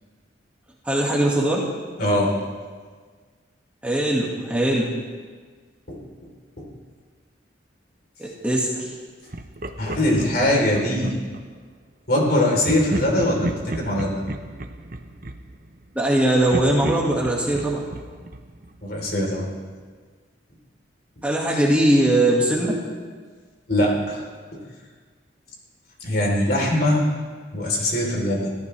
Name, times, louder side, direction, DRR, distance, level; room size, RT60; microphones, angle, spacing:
voice 1, 0.8-1.6 3.8-4.9 8.2-9.0 16.0-17.9 21.2-22.8, right 1 dB, 5° right, -4 dB, 2.0 m, -20 dB
voice 2, 2.0-2.3 5.9-6.0 6.6-6.7 9.8-11.2 12.1-14.2 18.8-19.5 23.7-24.2 24.5-24.6 26.0-27.1 27.5-28.6, left 1 dB, 55° left, -1 dB, 3.9 m, -22 dB
Laughter, 9.3-11.4 12.6-16.1 16.5-19.3, right 1 dB, 45° right, 0.9 m, -33 dB
25.0 x 14.5 x 3.4 m, 1.5 s
head